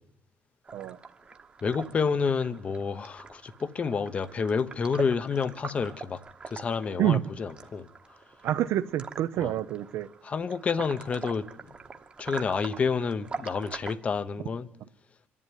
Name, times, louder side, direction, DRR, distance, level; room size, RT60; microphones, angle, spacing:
sound 1, 0.6-14.0, right 4 dB, 20° right, 1.1 m, -44 dB
voice 1, 1.6-6.2 6.5-7.9 9.4-9.5 10.2-11.4 12.2-14.7, left 5 dB, 25° left, 0.8 m, -29 dB
voice 2, 8.4-10.1, right 12 dB, 60° right, 0.7 m, -27 dB
26.5 x 11.0 x 9.9 m
cardioid pair, 180°, 5 cm